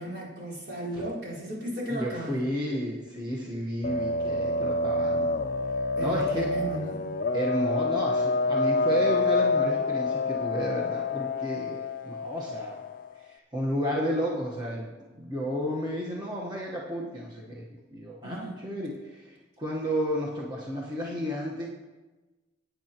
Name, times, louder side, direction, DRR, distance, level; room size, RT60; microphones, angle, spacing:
voice 1, 0.0-2.4 6.0-7.2 18.2-18.6, right 1 dB, 70° right, -7 dB, 4.4 m, -35 dB
voice 2, 1.9-5.4 6.0-6.5 7.3-12.8 13.1-14.9 15.1-21.7, equal, 25° right, -4 dB, 1.2 m, -32 dB
sound 1, 3.8-13.1, left 3 dB, 50° left, 0.4 m, -27 dB
17.0 x 9.2 x 3.0 m, 1.2 s
head